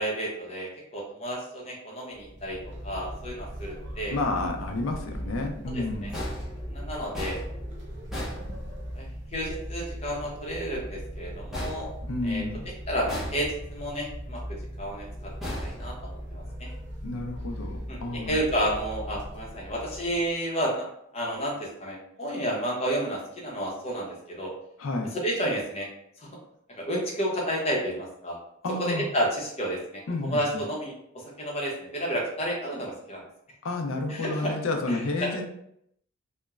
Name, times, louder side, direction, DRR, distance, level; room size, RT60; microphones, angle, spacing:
voice 1, 0.0-4.2 5.7-6.1 6.7-7.4 8.9-11.9 12.2-12.4 12.9-14.4 14.8-15.3 15.6-16.7 17.9-18.0 18.3-20.9 21.1-24.5 25.1-25.9 26.2-26.3 26.8-28.4 28.8-30.9 31.4-33.2 34.1-34.5 34.8-35.3, equal, 30° left, -3 dB, 0.7 m, -31 dB
sound 1, 2.1-20.4, equal, 60° right, 0.6 m, -39 dB
voice 2, 4.1-6.1 12.0-12.7 17.0-18.4 24.8-25.1 28.6-29.1 30.1-30.6 33.6-35.5, left 2 dB, 80° left, 4 dB, 0.4 m, -30 dB
sound 2, 6.1-9.2 11.5-12.6 13.1-13.9 15.4-16.5, equal, ahead, 0.7 m, -37 dB
2.9 x 2.1 x 2.3 m, 0.73 s
head